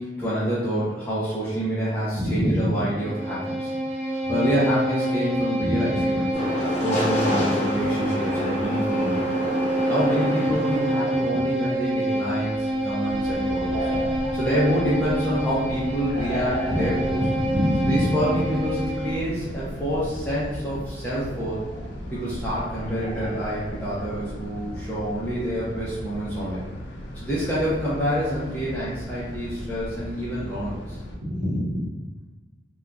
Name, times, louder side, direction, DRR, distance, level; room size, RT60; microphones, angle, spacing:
voice 1, 0.0-3.7 4.3-6.3 6.8-9.3 9.9-13.9 14.3-17.2 17.9-21.6 22.1-26.6 27.1-31.0, equal, 10° left, -10 dB, 0.5 m, -27 dB
voice 2, 2.1-2.7 4.2-4.4 5.6-6.2 7.8-7.9 10.5-10.6 11.3-11.4 13.9-14.2 16.7-18.3 31.2-31.9, equal, 85° right, -5 dB, 0.9 m, -27 dB
Bowed string instrument, 2.7-19.3, right 1 dB, 35° right, 0.6 m, -27 dB
sound 1, 6.3-11.3 12.1-25.3, equal, 40° left, 0.9 m, -32 dB
sound 2, 13.1-31.2, equal, 75° left, 0.4 m, -37 dB
2.8 x 2.2 x 2.4 m, 1.2 s
head